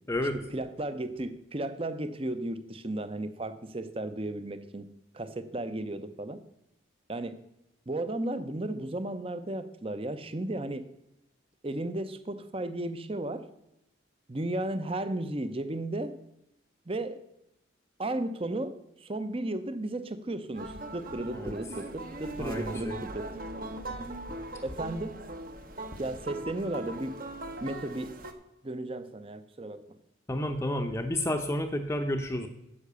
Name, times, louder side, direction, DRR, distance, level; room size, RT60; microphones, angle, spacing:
voice 1, 0.2-4.9 5.1-6.4 7.1-7.4 7.9-10.9 11.6-13.4 14.3-16.2 16.9-17.2 18.0-23.3 24.6-25.2 26.0-27.2 27.6-28.1 28.6-29.8, right 1 dB, 30° right, 12 dB, 0.7 m, -34 dB
sound 1, 20.5-28.3, right 1 dB, 45° right, 1.1 m, -40 dB
voice 2, 22.4-23.0 30.3-32.5, left 1 dB, 15° left, 5 dB, 0.7 m, -31 dB
9.8 x 7.7 x 6.8 m, 0.87 s
head